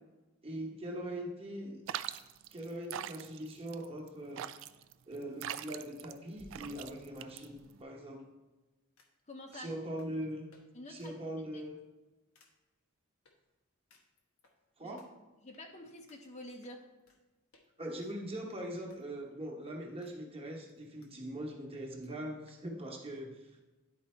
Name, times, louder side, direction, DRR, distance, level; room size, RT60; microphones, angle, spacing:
voice 1, 0.4-1.8 2.5-4.5 5.0-8.3 9.5-10.5 10.9-11.8 14.8-15.1 17.8-23.6, right 1 dB, 25° right, 0 dB, 1.1 m, -41 dB
sound 1, 1.9-7.8, right 11 dB, 60° right, 0.3 m, -43 dB
sound 2, 6.3-7.6 9.0-9.2 9.5-9.7 10.0-10.1 10.5-10.6 11.0-11.1 11.5-11.8 12.3-12.5 13.2-13.3 13.9-14.5 15.0-15.1 15.5-15.6 16.1-16.2 16.6-17.2 17.5-17.7 18.0-19.0 19.3-19.4 20.0-20.2 20.4-21.1 21.4-21.5 21.7-21.8 22.0-22.1 22.5-22.6, left 1 dB, 70° left, 1.1 m, -63 dB
voice 2, 9.3-9.7 10.7-11.2 11.5-11.6 14.8-15.0 15.4-16.8, left 1 dB, 35° left, 3 dB, 0.7 m, -48 dB
10.0 x 4.0 x 4.3 m, 1.1 s
head